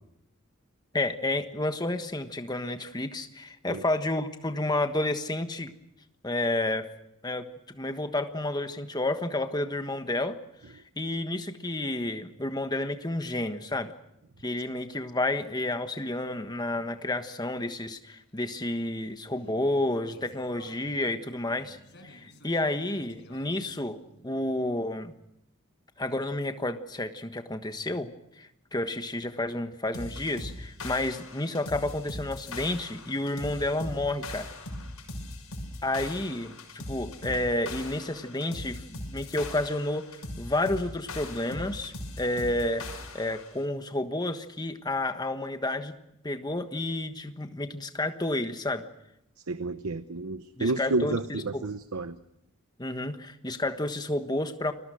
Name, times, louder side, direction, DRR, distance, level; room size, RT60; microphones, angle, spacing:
voice 1, 0.9-5.7 6.2-6.9 7.2-7.5 7.7-10.4 11.0-13.9 14.4-21.8 22.0-25.1 26.0-28.1 28.4-34.5 35.8-42.9 43.1-46.0 46.2-48.9 50.6-51.6 52.8-54.7, left 2 dB, 20° left, 8 dB, 1.4 m, -30 dB
sound 1, 18.1-25.0, left 1 dB, 55° left, 4.6 m, -54 dB
sound 2, 29.9-43.5, left 2 dB, 80° left, 6.4 m, -40 dB
voice 2, 49.5-52.1, right 3 dB, 90° right, 12 dB, 0.9 m, -30 dB
29.5 x 21.5 x 6.4 m, 0.80 s
head